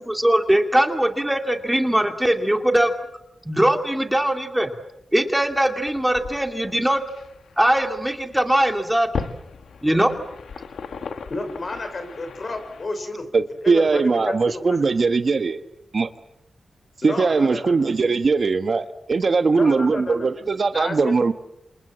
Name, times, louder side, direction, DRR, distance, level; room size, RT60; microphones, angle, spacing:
voice 1, 0.2-2.9 3.5-4.7 5.1-7.0 7.6-9.1 9.8-10.1, right 1 dB, 5° right, 5 dB, 2.4 m, -20 dB
sound 1, 5.5-12.9, left 5 dB, 85° left, 1.8 m, -37 dB
voice 2, 11.3-13.3 13.6-14.9 17.0-17.8 19.5-20.3 20.7-21.1, left 2 dB, 45° left, 8 dB, 5.4 m, -31 dB
voice 3, 13.3-15.6 15.9-16.1 17.0-21.3, right 4 dB, 50° right, 10 dB, 1.3 m, -20 dB
28.0 x 27.5 x 7.6 m, 0.85 s
wide cardioid pair, 100°, 0 cm